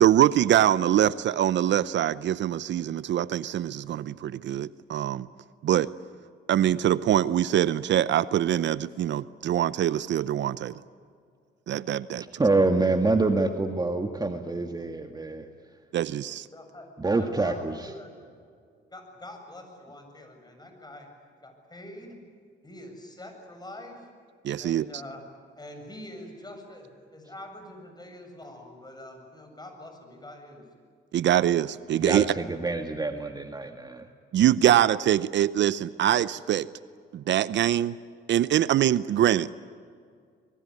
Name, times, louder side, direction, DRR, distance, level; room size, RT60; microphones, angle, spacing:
voice 1, 0.0-5.3 5.6-5.9 6.5-10.8 11.7-12.2 15.9-16.5 24.4-24.8 31.1-32.3 34.3-36.7 37.1-38.0 38.3-39.5, right 11 dB, 65° right, 17 dB, 0.7 m, -23 dB
voice 2, 12.2-15.5 17.0-17.9 32.0-34.1, right 3 dB, 20° right, 5 dB, 1.9 m, -26 dB
voice 3, 16.5-16.9 17.2-18.1 18.9-21.1 21.4-22.2 22.6-24.1 24.6-25.2 25.6-30.7, left 1 dB, 20° left, 5 dB, 7.5 m, -44 dB
25.5 x 22.0 x 9.8 m, 2.1 s
cardioid pair, 90°, 20 cm